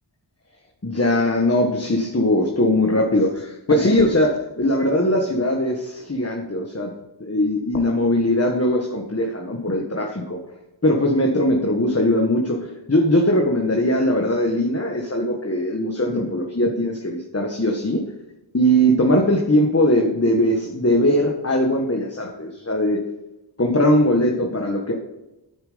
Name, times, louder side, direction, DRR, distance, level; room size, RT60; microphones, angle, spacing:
voice 1, 0.8-6.9 7.2-10.4 10.8-18.0 18.5-23.0 23.6-24.9, left 1 dB, 30° left, 1 dB, 1.6 m, -20 dB
9.3 x 9.1 x 5.2 m, 0.94 s
wide cardioid pair, 65°, 46 cm